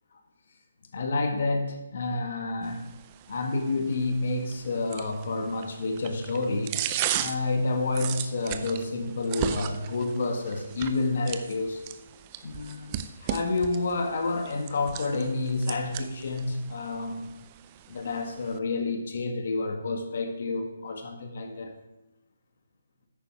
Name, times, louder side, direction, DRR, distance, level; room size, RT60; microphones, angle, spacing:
voice 1, 0.9-2.9 3.3-6.8 7.2-11.8 12.4-17.3 17.9-21.7, left 3 dB, 60° left, 5 dB, 1.8 m, -29 dB
sound 1, 2.6-18.6, right 11 dB, 30° right, 0.6 m, -37 dB
10.0 x 8.9 x 5.0 m, 0.95 s
hypercardioid pair, 150°, 0 cm